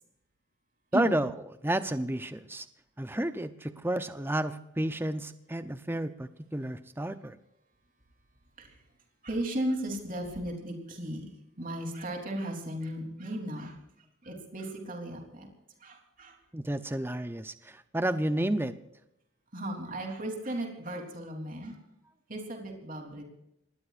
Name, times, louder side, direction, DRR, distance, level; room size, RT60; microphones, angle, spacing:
voice 1, 0.9-1.4 1.6-2.7 3.0-7.4 16.5-18.7, right 1 dB, 10° right, 11 dB, 0.6 m, -31 dB
voice 2, 9.2-15.5 15.8-16.4 19.5-21.8 22.3-23.2, right 1 dB, 40° right, 1 dB, 3.5 m, -36 dB
26.0 x 20.0 x 2.5 m, 0.83 s
head